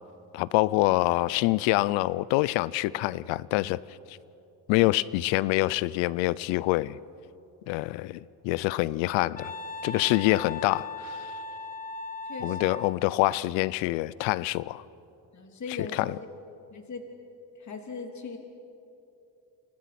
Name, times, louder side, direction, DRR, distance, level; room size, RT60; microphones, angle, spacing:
voice 1, 0.3-3.8 4.7-7.0 7.7-9.5 9.8-11.2 12.4-14.8 15.9-16.1, left 18 dB, 85° left, 21 dB, 0.7 m, -26 dB
Wind instrument woodwind instrument, 9.4-13.0, left 3 dB, 20° left, 1.9 m, -38 dB
voice 2, 12.2-12.8 15.3-16.1 16.7-17.0 17.6-18.4, left 4 dB, 40° left, 3 dB, 3.3 m, -39 dB
29.5 x 27.5 x 6.0 m, 2.8 s
supercardioid pair, 85°, 44 cm